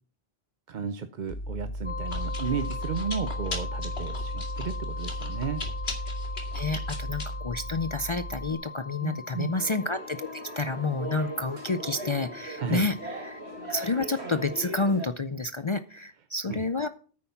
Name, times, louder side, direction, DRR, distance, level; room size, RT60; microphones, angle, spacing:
voice 1, 0.7-5.6 9.0-9.5 12.6-12.8 16.5-16.7, right 6 dB, 50° right, 10 dB, 0.7 m, -33 dB
Chewing mastication, 1.3-8.5, equal, 75° left, 2.4 m, -34 dB
sound 1, 1.8-14.7, left 4 dB, 10° left, 0.9 m, -42 dB
voice 2, 6.5-13.0 13.2-13.4 13.7-16.9, left 3 dB, 40° left, 12 dB, 0.5 m, -29 dB
sound 2, 9.5-15.1, equal, 85° right, 2.4 m, -39 dB
9.7 x 8.5 x 5.6 m, 0.39 s
omnidirectional pair, 1.1 m